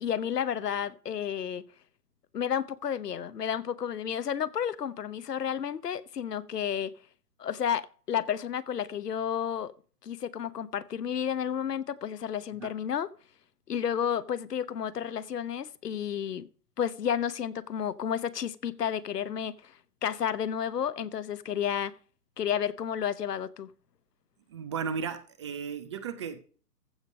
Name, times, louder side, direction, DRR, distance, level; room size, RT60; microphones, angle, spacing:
voice 1, 0.0-1.6 2.3-6.9 7.4-9.7 10.0-13.1 13.7-16.5 16.8-19.8 20.0-21.9 22.4-23.7, left 8 dB, 80° left, 1.0 m, -31 dB
voice 2, 24.5-26.4, right 6 dB, 20° right, 0.5 m, -35 dB
15.0 x 5.2 x 6.3 m
hypercardioid pair, 140°, 47 cm